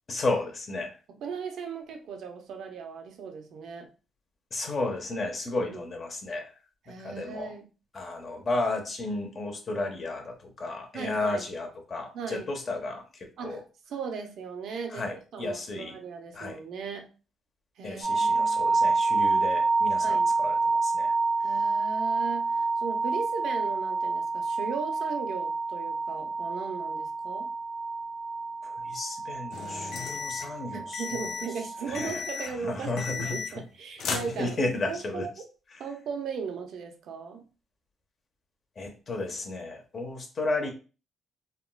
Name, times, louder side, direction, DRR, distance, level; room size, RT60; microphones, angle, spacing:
voice 1, 0.1-1.0 4.5-6.5 6.9-7.5 7.9-13.6 14.9-16.0 16.3-16.6 17.8-21.1 28.6-31.3 31.9-33.4 34.4-35.3 38.8-40.7, left 2 dB, 45° left, 3 dB, 0.8 m, -33 dB
voice 2, 1.1-3.9 5.7-5.8 6.9-7.7 10.9-11.4 12.1-12.5 13.4-13.6 13.9-17.1 17.8-18.6 20.0-20.4 21.4-27.5 30.7-34.6 34.9-35.3 35.8-37.4, right 6 dB, 75° right, 5 dB, 0.6 m, -37 dB
sound 1, 18.0-32.0, right 3 dB, 90° right, 1.1 m, -28 dB
sound 2, 29.5-30.6 30.9-31.6 31.9-32.6 33.0-33.7 34.0-34.9, left 5 dB, 70° left, 0.5 m, -35 dB
3.6 x 2.2 x 2.2 m, 0.34 s
cardioid pair, 90°, 0 cm